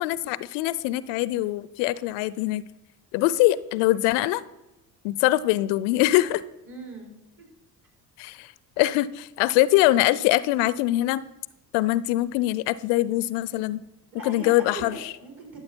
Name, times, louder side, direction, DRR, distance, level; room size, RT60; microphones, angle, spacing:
voice 1, 0.0-2.6 3.1-4.4 5.0-6.4 8.2-11.2 11.7-13.8 14.2-15.1, left 16 dB, 70° left, 19 dB, 0.5 m, -23 dB
voice 2, 6.7-7.5 14.1-15.6, right 3 dB, 45° right, 0 dB, 4.3 m, -40 dB
12.5 x 7.5 x 4.4 m, 0.96 s
hypercardioid pair, 50°, 45 cm